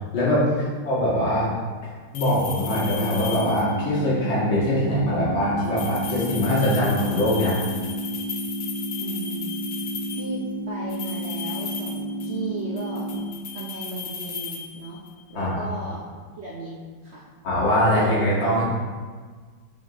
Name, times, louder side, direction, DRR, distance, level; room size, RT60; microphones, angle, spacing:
voice 1, 0.1-0.5 0.8-1.5 2.1-7.6 15.3-15.6 17.4-18.7, left 1 dB, 65° left, -8 dB, 2.6 m, -22 dB
sound 1, 2.1-3.9 5.6-10.4 10.9-12.5 12.8-15.2, left 7 dB, 85° left, 1.7 m, -36 dB
sound 2, 3.1-13.1, right 1 dB, 25° right, 1.0 m, -32 dB
voice 2, 9.0-9.4 10.1-13.1 13.5-15.0 15.3-16.1 16.4-16.7 17.0-17.3, right 3 dB, 85° right, -4 dB, 0.5 m, -35 dB
7.3 x 5.2 x 3.0 m, 1.5 s
omnidirectional pair, 2.3 m